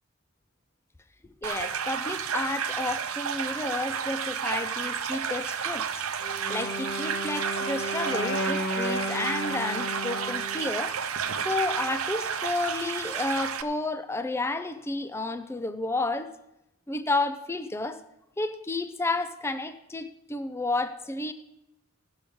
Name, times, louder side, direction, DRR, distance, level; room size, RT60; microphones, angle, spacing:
voice 1, 1.4-6.0 6.5-11.0 11.4-16.4 16.9-18.0 18.4-21.3, left 2 dB, 10° left, 10 dB, 0.4 m, -31 dB
sound 1, 1.4-13.6, right 7 dB, 85° right, 0.7 m, -31 dB
Wind instrument woodwind instrument, 6.2-10.8, left 1 dB, 55° left, 1.1 m, -33 dB
16.5 x 6.2 x 5.2 m, 0.86 s
head